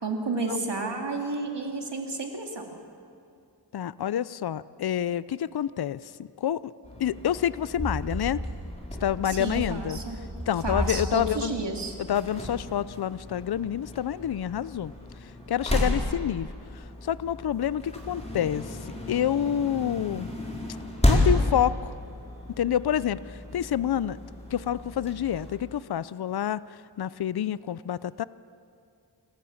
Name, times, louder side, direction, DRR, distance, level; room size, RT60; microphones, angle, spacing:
voice 1, 0.0-2.7 9.2-10.2 10.6-12.0, right 3 dB, 65° right, 2 dB, 2.7 m, -31 dB
voice 2, 3.7-6.0 6.4-6.6 7.0-8.4 9.0-10.0 10.5-11.6 12.1-14.9 15.5-16.5 16.7-18.8 19.1-20.3 21.1-21.9 22.6-24.2 24.5-26.6 27.0-28.2, left 10 dB, 60° left, 18 dB, 0.5 m, -28 dB
sound 1, 6.8-25.5, left 1 dB, 15° left, 4.6 m, -32 dB
27.0 x 14.5 x 7.2 m, 2.4 s
wide cardioid pair, 60°, 44 cm